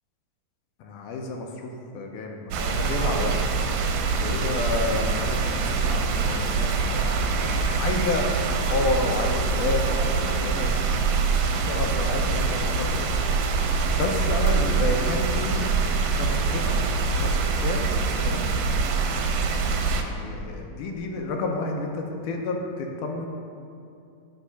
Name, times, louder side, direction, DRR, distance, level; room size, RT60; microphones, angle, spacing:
voice 1, 0.8-3.4 4.1-10.8 11.5-13.2 13.9-15.7 16.1-16.8 17.2-18.6 20.0-23.3, left 3 dB, 80° left, 2 dB, 2.1 m, -30 dB
sound 1, 2.5-20.0, right 4 dB, 90° right, 2.3 m, -24 dB
9.9 x 3.4 x 5.6 m, 2.6 s
omnidirectional pair, 3.8 m